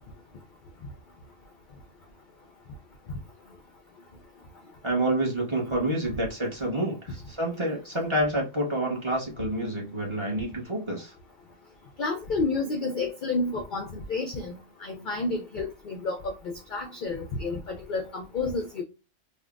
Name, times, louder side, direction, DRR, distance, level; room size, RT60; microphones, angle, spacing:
voice 1, 4.8-11.1, right 1 dB, 25° right, 0.8 m, -28 dB
voice 2, 12.0-18.8, left 3 dB, 60° left, 0.5 m, -30 dB
3.4 x 2.2 x 2.3 m
omnidirectional pair, 1.4 m